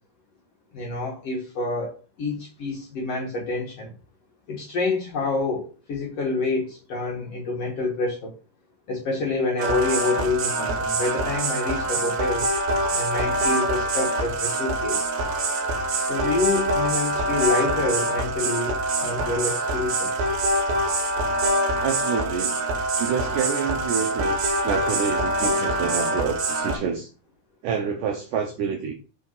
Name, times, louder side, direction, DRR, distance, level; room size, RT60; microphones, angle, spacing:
voice 1, 0.7-3.9 4.5-8.3 8.9-12.5 12.9-15.1 16.0-20.2, left 3 dB, 70° left, -2 dB, 1.4 m, -27 dB
sound 1, 9.6-26.8, right 1 dB, 70° right, 3.0 m, -25 dB
voice 2, 21.8-22.6 23.0-27.1 27.6-28.9, right 7 dB, 90° right, 3 dB, 1.8 m, -28 dB
6.2 x 3.7 x 5.5 m, 0.35 s
omnidirectional pair, 4.7 m